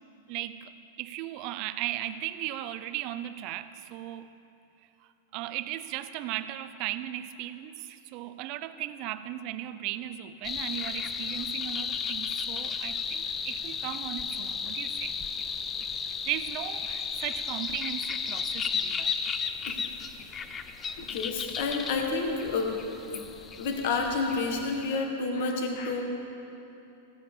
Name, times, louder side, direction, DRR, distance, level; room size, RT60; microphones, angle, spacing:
voice 1, 0.3-0.7 1.0-4.3 5.3-15.2 16.3-19.1, right 13 dB, 35° right, 13 dB, 0.5 m, -36 dB
sound 1, 10.4-24.9, left 6 dB, 15° left, 0.4 m, -34 dB
voice 2, 20.8-22.7 23.0-23.2 23.6-26.0, left 4 dB, 50° left, 3 dB, 1.6 m, -30 dB
16.0 x 9.8 x 5.3 m, 2.8 s
supercardioid pair, 165°, 0 cm